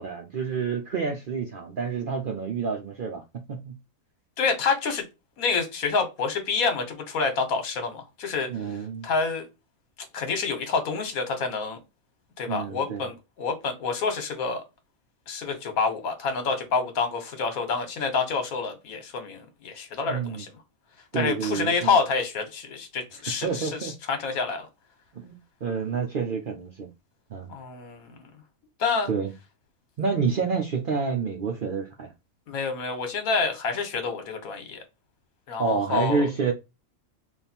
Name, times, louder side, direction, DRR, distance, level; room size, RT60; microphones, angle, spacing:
voice 1, 0.0-3.2 3.5-3.7 8.5-9.1 12.5-13.1 20.1-20.4 21.1-22.0 23.4-23.9 25.1-26.9 27.3-27.5 29.1-29.3 30.0-32.1 35.6-36.5, right 5 dB, 55° right, 0.6 m, -28 dB
voice 2, 4.4-5.0 5.4-8.5 9.0-9.5 10.1-11.8 12.4-14.6 15.3-20.5 21.1-24.7 27.5-28.3 28.8-29.1 32.5-34.8 35.5-36.2, left 5 dB, 80° left, 1.4 m, -28 dB
3.5 x 2.4 x 4.2 m
omnidirectional pair, 1.5 m